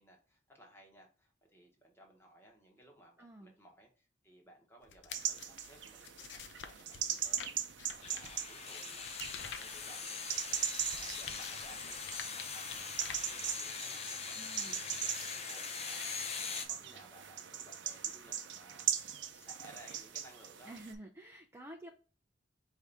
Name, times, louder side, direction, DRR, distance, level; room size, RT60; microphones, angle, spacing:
voice 1, 0.0-18.9 19.3-20.8, right 1 dB, 15° left, 0 dB, 1.0 m, -60 dB
voice 2, 3.2-3.5 14.4-14.8 20.6-21.9, right 1 dB, 15° right, 2 dB, 0.4 m, -50 dB
sound 1, 4.8-13.9, left 7 dB, 80° left, 0.5 m, -50 dB
sound 2, 5.1-21.0, right 9 dB, 85° right, 0.5 m, -40 dB
sound 3, 8.0-16.7, left 5 dB, 35° left, 0.5 m, -42 dB
4.9 x 2.7 x 3.3 m, 0.39 s
head